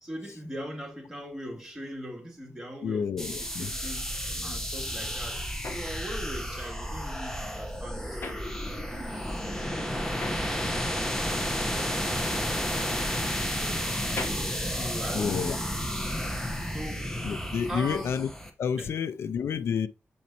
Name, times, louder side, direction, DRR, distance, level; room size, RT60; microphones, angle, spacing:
voice 1, 0.0-4.2 4.4-5.4 5.7-10.8 11.2-13.0 13.3-14.4 14.7-15.7 16.1-16.3 16.7-17.1 17.7-18.1 18.8-19.0, equal, 10° right, 2.4 m, -41 dB
voice 2, 2.8-3.7 15.1-15.6 17.2-18.3 18.6-19.9, left 7 dB, 85° left, 0.5 m, -29 dB
sound 1, 3.2-18.5, equal, 10° left, 1.2 m, -32 dB
sound 2, 5.6-9.2 9.5-15.7, left 3 dB, 65° left, 1.2 m, -43 dB
7.0 x 5.1 x 2.9 m
wide cardioid pair, 95°, 4 cm